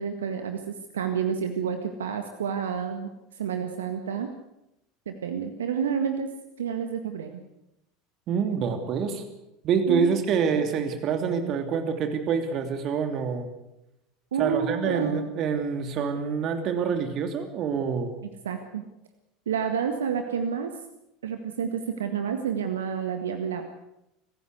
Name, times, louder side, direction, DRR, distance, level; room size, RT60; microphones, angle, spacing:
voice 1, 0.0-4.3 5.0-6.3 6.6-7.3 9.9-10.1 14.3-15.3 18.4-18.8 19.4-20.7 21.2-23.6, right 7 dB, 75° right, 7 dB, 1.7 m, -29 dB
voice 2, 8.3-9.2 9.6-13.5 14.4-18.1, right 6 dB, 45° right, 7 dB, 2.8 m, -26 dB
26.0 x 15.0 x 8.2 m, 0.88 s
figure-of-eight pair, 75°, 0 cm